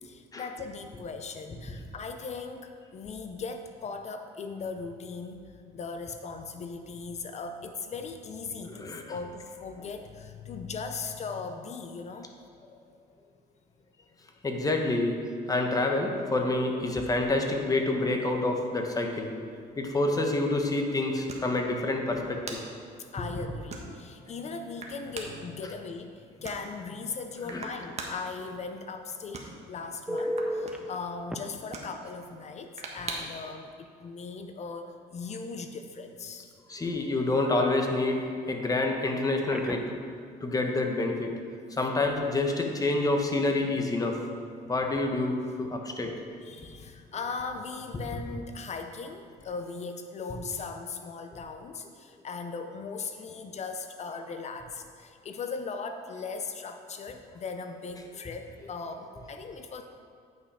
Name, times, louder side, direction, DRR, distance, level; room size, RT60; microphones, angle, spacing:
voice 1, 0.0-12.3 23.1-36.5 41.7-42.0 46.1-59.8, left 4 dB, 40° left, 7 dB, 0.6 m, -39 dB
voice 2, 8.7-9.0 14.4-19.3 19.8-22.6 23.2-23.3 27.5-27.6 36.7-38.2 38.5-39.9 40.4-41.3 41.8-44.2 44.7-46.1, left 2 dB, 20° left, 3 dB, 1.1 m, -27 dB
sound 1, 16.8-33.5, right 3 dB, 40° right, 1.3 m, -46 dB
Telephone, 30.1-30.8 31.3-31.4 33.2-33.3 33.7-33.9 39.2-40.0 47.1-47.3, equal, 5° right, 0.6 m, -34 dB
9.2 x 5.8 x 4.9 m, 2.3 s
cardioid pair, 110°, 17 cm